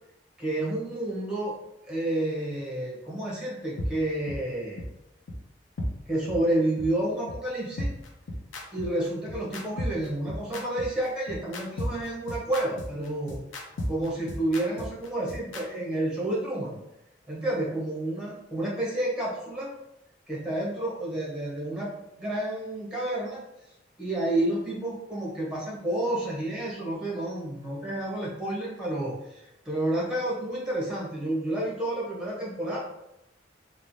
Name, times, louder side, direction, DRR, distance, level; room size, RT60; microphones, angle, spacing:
voice 1, 0.4-1.6 1.9-4.8 6.1-7.9 8.7-16.8 17.3-19.7 20.3-23.4 24.0-32.8, right 1 dB, 5° right, -5 dB, 0.7 m, -30 dB
sound 1, 3.8-3.9 4.3-4.4 4.8-4.9 5.3-5.4 5.8-5.9 6.3-6.4 6.8-6.9 7.3-7.4 7.8-15.6, left 1 dB, 75° left, 0.5 m, -33 dB
3.1 x 2.1 x 2.5 m, 0.87 s
head